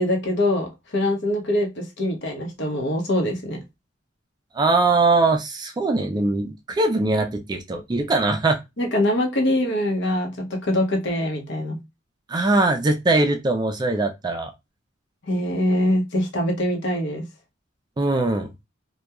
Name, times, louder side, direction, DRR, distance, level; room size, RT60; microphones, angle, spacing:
voice 1, 0.0-3.6 8.8-11.8 15.2-17.2, left 1 dB, 60° left, 0.8 m, -23 dB
voice 2, 4.5-8.6 12.3-14.5 18.0-18.5, right 2 dB, 20° right, 0.3 m, -21 dB
2.8 x 2.2 x 2.3 m
head